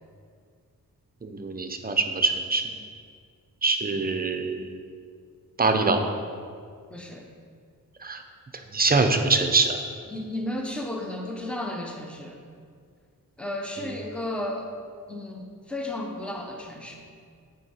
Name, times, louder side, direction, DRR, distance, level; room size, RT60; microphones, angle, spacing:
voice 1, 1.2-2.6 3.6-4.7 5.6-6.1 8.0-8.2 8.7-9.8 13.8-13.9, right 3 dB, 25° right, 6 dB, 0.6 m, -24 dB
voice 2, 6.9-7.2 10.1-12.4 13.4-14.7 15.1-17.0, left 1 dB, 5° left, 1 dB, 0.8 m, -33 dB
7.8 x 4.7 x 4.4 m, 2.1 s
wide cardioid pair, 80°, 36 cm